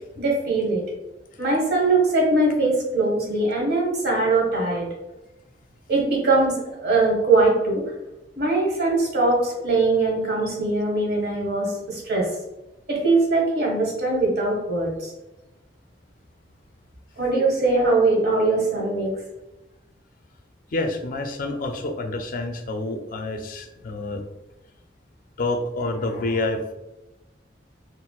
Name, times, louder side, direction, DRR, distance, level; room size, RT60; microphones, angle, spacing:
voice 1, 0.2-0.8 1.4-4.9 5.9-7.8 8.4-12.3 12.9-15.1 17.2-19.1, right 2 dB, 60° right, -2 dB, 1.2 m, -21 dB
voice 2, 20.7-24.2 25.4-26.7, left 2 dB, 50° left, 5 dB, 0.4 m, -28 dB
4.2 x 2.0 x 2.3 m, 1.0 s
head